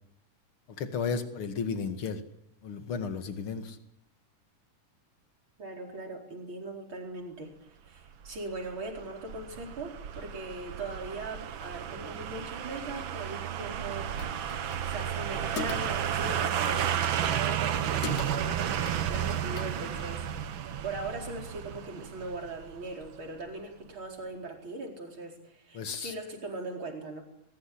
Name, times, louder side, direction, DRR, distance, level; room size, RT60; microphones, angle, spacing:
voice 1, 0.8-2.2 2.6-3.8 25.7-26.1, left 5 dB, 45° left, 7 dB, 2.7 m, -33 dB
voice 2, 5.6-14.1 14.8-27.2, right 3 dB, 40° right, 2 dB, 5.1 m, -40 dB
sound 1, 8.2-23.2 23.5-23.6, right 9 dB, 60° right, 1.3 m, -32 dB
sound 2, 13.8-20.1, left 7 dB, 70° left, 2.9 m, -44 dB
21.5 x 21.5 x 10.0 m, 0.81 s
omnidirectional pair, 3.6 m